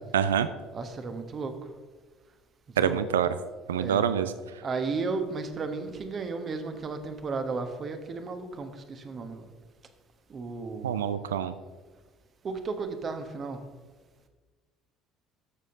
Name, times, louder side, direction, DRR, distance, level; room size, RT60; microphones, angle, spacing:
voice 1, 0.1-0.5 2.8-3.3 3.7-4.3 10.8-11.5, right 9 dB, 75° right, 13 dB, 0.3 m, -25 dB
voice 2, 0.7-1.5 2.8-3.0 3.7-4.0 4.6-9.4 10.3-10.9 12.4-13.6, right 4 dB, 35° right, 8 dB, 1.2 m, -34 dB
13.5 x 6.9 x 3.8 m, 1.4 s
figure-of-eight pair, 60°, 0 cm